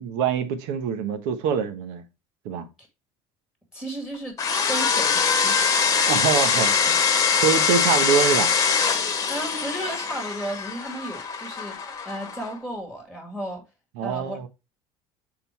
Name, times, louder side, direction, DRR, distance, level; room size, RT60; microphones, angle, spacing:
voice 1, 0.0-2.0 2.4-2.7 6.1-7.1 7.4-8.5 14.0-14.5, right 7 dB, 80° right, 1.2 m, -25 dB
voice 2, 3.7-4.4 4.7-5.8 7.5-7.6 9.0-13.6 14.0-14.5, right 1 dB, 5° right, 2.0 m, -34 dB
sound 1, 4.4-12.5, left 6 dB, 25° left, 1.1 m, -23 dB
6.8 x 3.9 x 4.5 m
cardioid pair, 140°, 13 cm